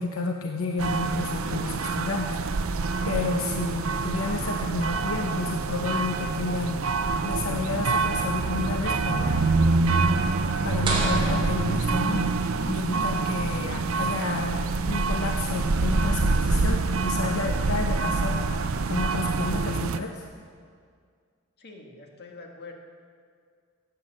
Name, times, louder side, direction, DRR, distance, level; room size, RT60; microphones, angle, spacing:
voice 1, 0.0-2.8 3.0-9.6 10.6-12.4 12.7-20.3, left 3 dB, 75° left, 3 dB, 0.9 m, -31 dB
sound 1, 0.8-20.0, right 3 dB, 75° right, 0.6 m, -26 dB
sound 2, 3.2-10.8, right 1 dB, 45° right, 1.0 m, -44 dB
sound 3, 10.8-12.5, right 2 dB, 25° right, 3.3 m, -33 dB
voice 2, 21.6-22.7, left 3 dB, 50° left, 2 dB, 1.7 m, -44 dB
13.5 x 8.8 x 7.8 m, 2.1 s
head